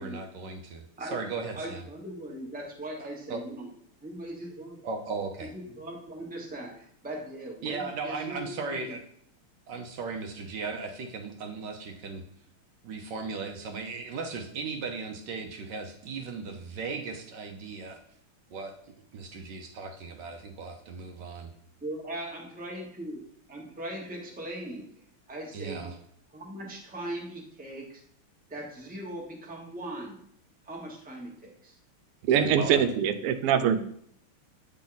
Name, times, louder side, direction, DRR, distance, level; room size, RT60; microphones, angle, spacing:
voice 1, 0.0-0.8 1.1-1.8 3.0-3.4 4.8-5.5 7.6-9.0 9.7-12.2 12.8-18.0 18.5-21.5 25.5-25.9 32.3-32.8, right 4 dB, 65° right, 4 dB, 1.2 m, -37 dB
voice 2, 1.5-3.7 4.0-4.8 5.4-8.9 21.8-23.2 23.5-24.9 25.3-25.9 26.3-28.0 28.5-30.2 30.6-31.8, right 1 dB, 5° right, -1 dB, 0.9 m, -39 dB
voice 3, 32.3-33.8, right 8 dB, 90° right, 9 dB, 1.6 m, -23 dB
8.5 x 4.1 x 3.9 m, 0.66 s
omnidirectional pair, 2.4 m